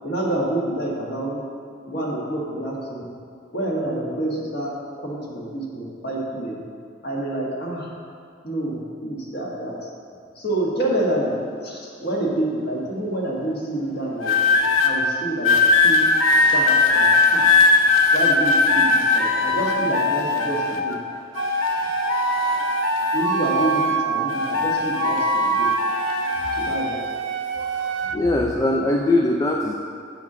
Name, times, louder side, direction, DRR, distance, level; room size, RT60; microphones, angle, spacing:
voice 1, 0.0-1.4 1.9-3.1 3.5-6.6 7.0-7.9 8.4-9.9 10.3-14.3 14.8-15.5 15.8-16.1 16.5-17.5 18.1-21.0 23.1-25.7 26.6-27.0, right 1 dB, 50° left, -3 dB, 1.7 m, -27 dB
sound 1, 14.2-14.9 15.4-21.0 21.3-24.0 24.3-26.8 27.6-27.9, left 3 dB, 85° left, 0.9 m, -20 dB
Wind instrument woodwind instrument, 21.4-28.2, right 7 dB, 65° right, 0.4 m, -27 dB
voice 2, 28.1-29.7, left 2 dB, 15° left, 0 dB, 0.4 m, -20 dB
8.6 x 5.8 x 6.2 m, 2.3 s
head